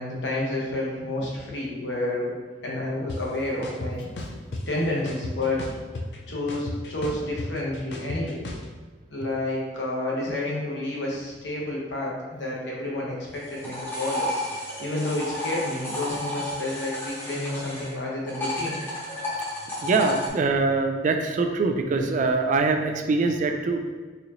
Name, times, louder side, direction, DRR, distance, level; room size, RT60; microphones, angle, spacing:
voice 1, 0.0-2.3 2.6-4.0 4.7-5.7 6.3-8.4 9.1-14.3 14.8-18.8, left 2 dB, 85° left, -4 dB, 1.0 m, -30 dB
sound 1, 3.1-3.2 3.6-4.6 5.1-6.2 6.5-8.7, left 2 dB, 70° left, 0.5 m, -34 dB
sound 2, 13.3-17.9 18.3-20.3, equal, 15° left, 0.9 m, -32 dB
voice 2, 19.8-23.8, right 3 dB, 45° right, 5 dB, 0.3 m, -23 dB
4.1 x 2.9 x 2.6 m, 1.4 s
head